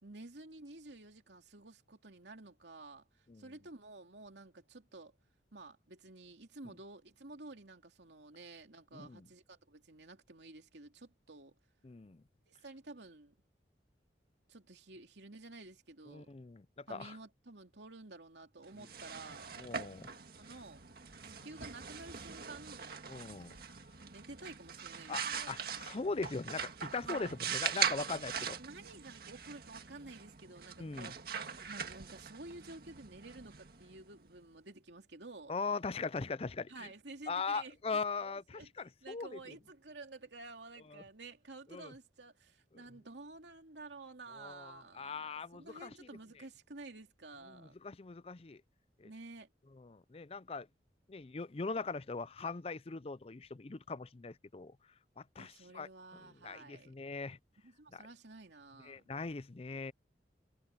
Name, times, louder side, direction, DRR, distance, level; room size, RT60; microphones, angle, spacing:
voice 1, 0.0-5.1 5.5-11.5 12.5-13.3 14.5-16.3 16.9-19.5 20.4-20.8 21.2-22.9 24.1-25.9 27.0-27.4 28.5-31.2 31.6-35.5 36.7-37.8 38.2-38.7 39.0-47.7 49.0-49.5 55.4-56.9 57.6-59.0, right 2 dB, 80° right, 2.7 m, -52 dB
voice 2, 8.9-9.3 11.8-12.2 16.1-17.2 19.6-20.1 23.1-23.6 25.1-28.6 30.8-31.1 35.5-36.9 37.3-39.6 40.9-41.0 41.7-41.9 44.4-46.1 47.5-48.6 49.0-49.1 49.8-50.7 51.1-54.8 55.2-55.9 56.4-57.4 57.9-58.0 58.8-59.9, left 4 dB, 35° left, 0.5 m, -40 dB
sound 1, 18.7-34.4, right 7 dB, 55° right, 1.9 m, -41 dB
head